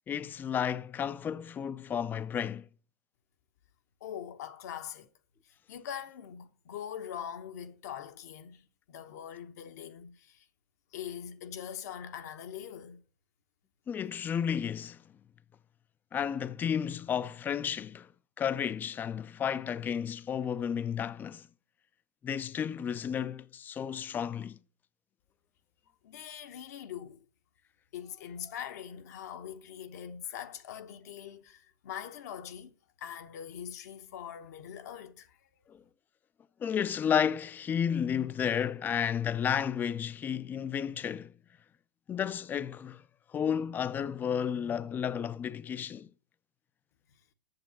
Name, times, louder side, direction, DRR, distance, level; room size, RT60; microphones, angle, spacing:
voice 1, 0.1-2.7 13.9-15.0 16.1-18.1 18.4-21.5 22.2-24.6 35.7-35.8 36.6-41.3 42.1-43.0 43.3-46.1, left 8 dB, 20° left, 0.4 m, -32 dB
voice 2, 4.0-5.1 5.4-10.5 10.9-13.0 26.0-27.2 27.9-32.7 33.0-35.5, left 9 dB, 60° left, 0.9 m, -42 dB
7.8 x 6.9 x 7.2 m
hypercardioid pair, 105°, 10 cm